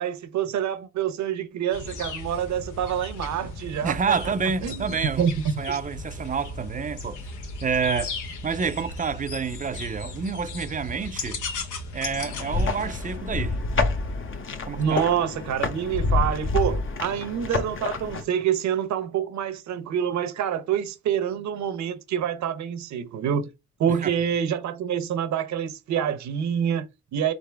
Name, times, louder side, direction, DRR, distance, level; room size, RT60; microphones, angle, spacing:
voice 1, 0.0-4.0 4.6-5.8 14.8-23.5 23.8-27.3, right 8 dB, 65° right, 0.8 m, -27 dB
sound 1, 1.7-13.2, left 3 dB, 80° left, 1.1 m, -36 dB
voice 2, 3.8-5.3 5.6-7.3 7.6-8.2 8.4-11.4 11.9-13.6 14.7-15.0 23.9-24.1, right 5 dB, 25° right, 0.5 m, -28 dB
sound 2, 12.1-18.2, left 3 dB, 40° left, 0.8 m, -28 dB
4.0 x 3.7 x 3.3 m
cardioid pair, 90°, 30 cm